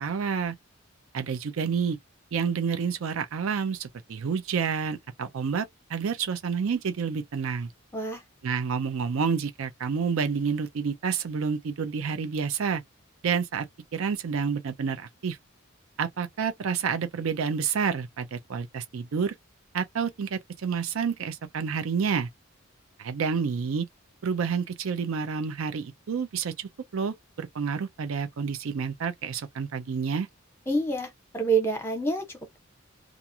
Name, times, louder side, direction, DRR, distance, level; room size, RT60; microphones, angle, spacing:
voice 1, 0.0-0.6 1.1-2.0 2.3-7.7 8.4-12.8 13.2-13.7 13.9-15.4 16.0-19.3 19.7-22.3 23.0-23.9 24.2-30.3, right 6 dB, 75° right, 0.4 m, -29 dB
voice 2, 30.7-32.3, right 3 dB, 10° left, 0.9 m, -27 dB
2.5 x 2.3 x 2.7 m
head